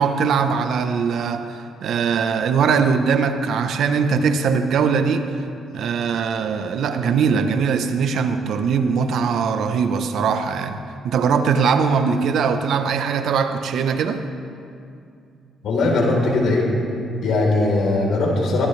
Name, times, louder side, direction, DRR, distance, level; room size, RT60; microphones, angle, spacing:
voice 1, 0.0-5.3 5.7-10.8 11.0-14.2, right 6 dB, 70° right, 8 dB, 1.0 m, -21 dB
voice 2, 15.6-16.7 17.2-18.7, left 2 dB, 70° left, -1 dB, 4.1 m, -19 dB
22.5 x 16.0 x 3.4 m, 2.5 s
cardioid pair, 90°, 0 cm